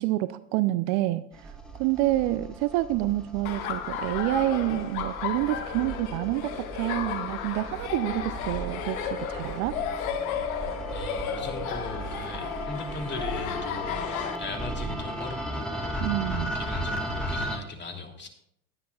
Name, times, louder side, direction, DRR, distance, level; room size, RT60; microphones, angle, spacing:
voice 1, 0.0-9.8 16.0-16.5, right 16 dB, 50° right, 15 dB, 0.6 m, -28 dB
sound 1, 1.3-17.6, right 1 dB, ahead, 2.7 m, -36 dB
Laughter, 3.4-14.4, left 8 dB, 65° left, 1.5 m, -34 dB
voice 2, 10.9-18.3, left 3 dB, 25° left, 3 dB, 3.0 m, -39 dB
20.0 x 10.0 x 2.4 m, 0.72 s
hypercardioid pair, 90°, 45 cm